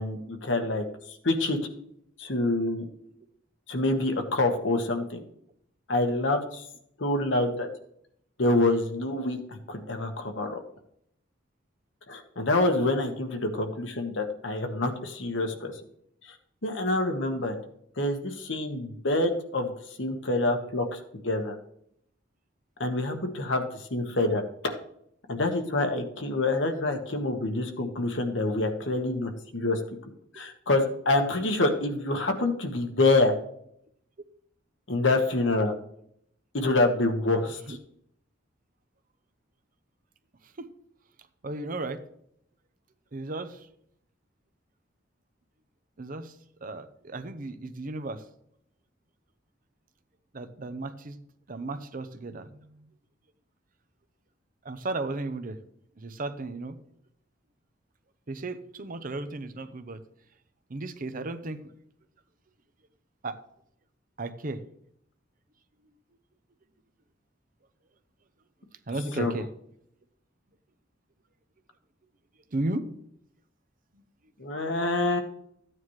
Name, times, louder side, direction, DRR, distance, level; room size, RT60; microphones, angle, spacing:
voice 1, 0.0-1.6 2.2-2.8 3.7-5.2 5.9-6.7 7.0-7.7 8.4-10.6 12.1-15.7 16.3-16.4 16.6-17.6 18.0-19.7 20.0-21.0 21.2-21.6 22.8-24.7 25.3-29.8 30.3-33.3 34.9-35.7 36.5-37.8 69.2-69.3 74.4-75.2, left 2 dB, 70° left, 5 dB, 1.4 m, -26 dB
voice 2, 41.4-42.0 43.1-43.7 46.0-46.3 46.6-48.2 50.3-51.2 51.5-52.9 54.6-55.6 56.0-56.8 58.3-60.0 60.7-61.6 63.2-63.4 64.2-64.6 68.9-69.5 72.5-72.9 73.9-74.0, right 2 dB, 45° right, 11 dB, 0.8 m, -34 dB
14.5 x 9.2 x 3.2 m, 0.72 s
head